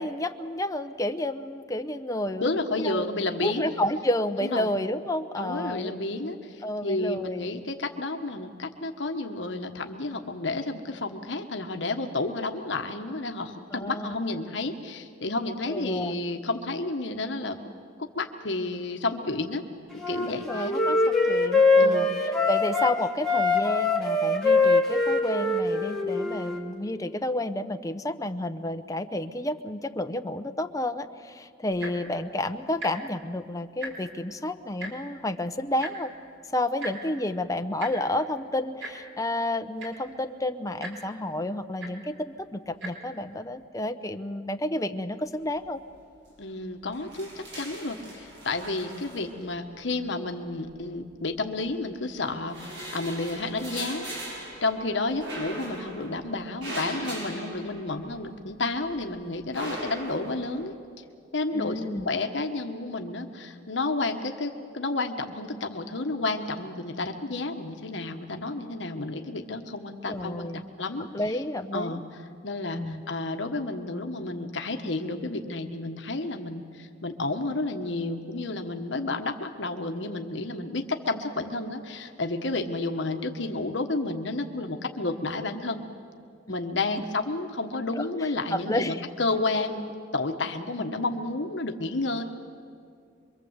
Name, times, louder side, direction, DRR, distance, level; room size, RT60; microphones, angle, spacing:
voice 1, 0.0-2.5 2.8-3.0 3.4-5.9 6.6-7.5 13.7-14.2 15.7-16.2 19.2-19.4 20.3-36.1 36.5-45.8 57.5-57.6 61.5-62.1 70.1-70.6 71.1-72.0 72.7-73.0 87.9-88.0 88.5-89.0, left 1 dB, 20° left, 8 dB, 0.9 m, -31 dB
voice 2, 2.3-3.8 4.4-4.7 5.4-17.6 18.0-19.6 20.1-20.7 21.8-22.1 46.4-54.1 54.6-60.7 61.3-61.8 62.0-71.4 71.7-85.8 86.5-92.2, left 2 dB, 70° left, 4 dB, 1.4 m, -31 dB
Wind instrument woodwind instrument, 20.0-22.9 23.2-26.6, left 3 dB, 5° left, 2.6 m, -23 dB
Tick-tock, 31.7-32.1 32.7-32.9 33.2-33.4 33.6-34.2 34.8-34.9 35.8-35.9 36.8-36.9 37.8-37.9 38.8-38.9 39.5-39.6 39.8-40.1 40.8-40.9 41.8-41.9 42.7-42.9 43.6-43.7, right 2 dB, 90° right, 4.7 m, -37 dB
sound 1, 45.4-45.9 46.2-46.3 46.7-49.8 50.7-51.6 52.1-58.4 58.7-60.6, right 1 dB, 70° right, 6.6 m, -40 dB
26.0 x 23.5 x 8.1 m, 2.3 s
head